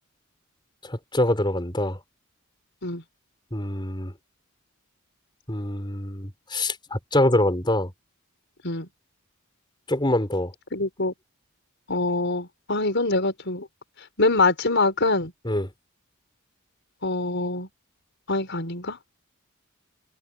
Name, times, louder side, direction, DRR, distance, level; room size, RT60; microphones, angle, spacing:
voice 1, 0.8-2.0 3.5-4.1 5.5-7.9 9.9-10.5 15.4-15.7, left 1 dB, 20° left, 4.9 m, -25 dB
voice 2, 10.7-11.1 11.9-13.7 14.2-15.3 17.0-17.7 18.3-19.0, left 3 dB, 55° left, 5.4 m, -24 dB
head